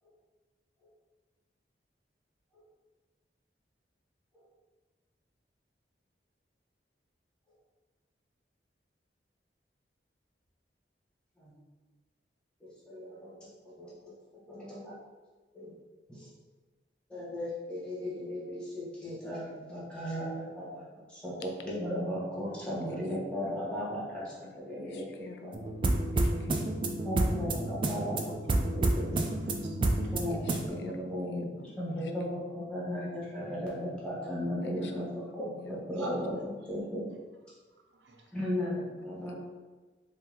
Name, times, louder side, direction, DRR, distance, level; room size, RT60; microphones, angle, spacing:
voice 1, 12.6-13.3 13.8-14.1 14.5-14.9 15.5-15.7 16.1-16.3 17.1-20.8 21.1-25.5 27.0-29.2 30.1-31.5 31.8-37.0 38.3-39.3, equal, 5° left, -7 dB, 1.1 m, -36 dB
voice 2, 23.4-23.8 24.8-25.6 25.9-27.1 30.0-31.7 32.0-32.1 34.6-34.9 35.6-35.8 39.3-39.4, left 3 dB, 70° left, 5 dB, 0.4 m, -50 dB
sound 1, 25.5-30.7, right 2 dB, 30° right, 0.3 m, -29 dB
voice 3, 27.5-30.2 36.0-36.1 37.9-38.2 39.3-39.4, right 1 dB, 90° right, 0 dB, 0.6 m, -52 dB
3.3 x 2.8 x 3.8 m, 1.3 s
head